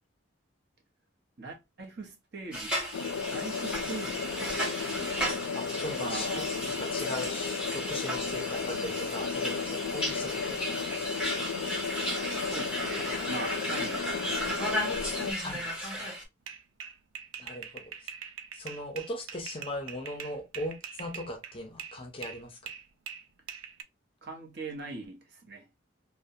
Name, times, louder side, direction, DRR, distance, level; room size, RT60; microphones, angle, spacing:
voice 1, 1.4-2.8 3.3-4.6 4.9-5.3 6.0-6.5 7.2-7.3 12.4-14.1 14.3-15.1 24.2-25.7, right 3 dB, 55° right, 0.7 m, -42 dB
sound 1, 2.5-16.2, equal, 5° right, 0.8 m, -34 dB
sound 2, 2.9-15.3, left 6 dB, 80° left, 0.3 m, -34 dB
voice 2, 5.5-10.9 15.4-16.1 17.4-18.1 18.5-22.6, left 1 dB, 25° left, 0.6 m, -39 dB
sound 3, 16.5-22.0 22.2-23.8, right 7 dB, 85° right, 0.4 m, -43 dB
2.6 x 2.1 x 2.5 m
head